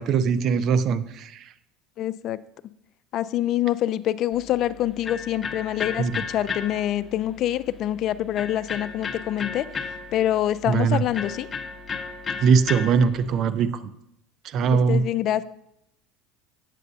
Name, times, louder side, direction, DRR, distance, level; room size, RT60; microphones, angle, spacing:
voice 1, 0.0-1.5 6.0-6.2 10.7-11.0 12.4-13.7 14.4-15.0, right 6 dB, 50° right, 14 dB, 0.5 m, -21 dB
voice 2, 2.0-2.4 3.1-9.7 10.1-11.5 14.9-15.4, left 12 dB, 55° left, 14 dB, 0.3 m, -25 dB
Electric guitar, 4.3-13.4, left 5 dB, 25° left, 0.8 m, -35 dB
8.2 x 7.4 x 2.7 m, 0.77 s
supercardioid pair, 95°, 0 cm